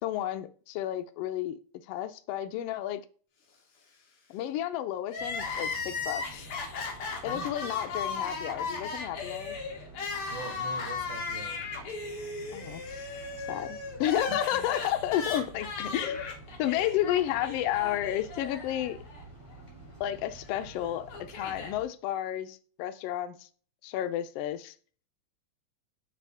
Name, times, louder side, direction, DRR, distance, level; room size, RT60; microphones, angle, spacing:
voice 1, 0.0-1.6 1.9-3.0 4.3-6.5 7.2-9.6 12.5-13.1 13.5-16.3 16.6-19.0 20.0-21.1 21.3-23.5 23.8-24.7, left 12 dB, 90° left, 1.3 m, -31 dB
Crying sobbing, 5.1-19.2 19.5-19.6 20.6-21.7, left 4 dB, 55° left, 1.8 m, -36 dB
sound 1, 5.2-21.8, right 2 dB, 10° left, 2.0 m, -49 dB
voice 2, 10.3-11.7 14.3-14.4, right 3 dB, 90° right, 2.5 m, -42 dB
9.4 x 3.6 x 3.5 m
omnidirectional pair, 3.4 m